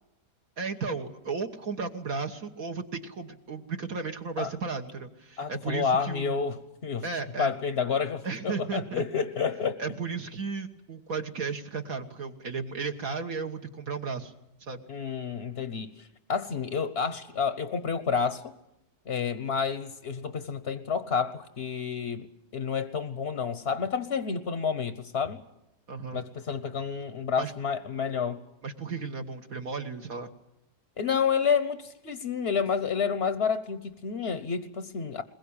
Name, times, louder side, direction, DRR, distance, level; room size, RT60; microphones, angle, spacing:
voice 1, 0.6-6.4 7.0-7.5 8.2-9.1 9.8-14.3 14.6-14.8 25.9-26.2 27.4-27.5 28.6-30.3, right 4 dB, 55° right, 1.7 m, -34 dB
voice 2, 5.4-7.1 7.4-9.8 14.9-18.5 19.1-22.3 22.5-25.4 26.1-28.4 31.0-35.2, left 6 dB, 45° left, 1.1 m, -29 dB
21.5 x 21.5 x 8.7 m
omnidirectional pair, 1.8 m